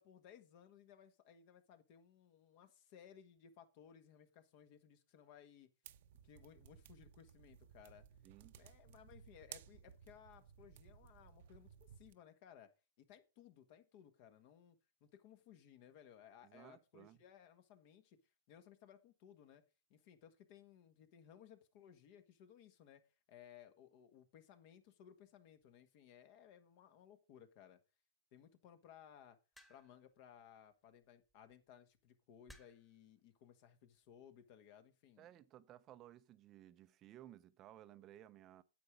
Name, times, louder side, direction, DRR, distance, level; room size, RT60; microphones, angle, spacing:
voice 1, 0.0-5.7 6.2-8.0 8.5-12.7 13.0-18.2 18.5-19.6 19.9-23.0 23.3-27.8 28.3-29.4 29.7-35.3, left 9 dB, 45° left, 1.5 m, -61 dB
sound 1, 5.9-12.1, right 10 dB, 60° right, 0.8 m, -59 dB
voice 2, 8.2-8.5 16.4-17.2 35.2-38.6, right 12 dB, 30° right, 0.6 m, -58 dB
sound 2, 29.5-30.1 31.3-31.5 32.5-33.0 33.9-34.2, equal, 5° left, 1.5 m, -62 dB
9.4 x 8.2 x 5.0 m
hypercardioid pair, 135°, 0 cm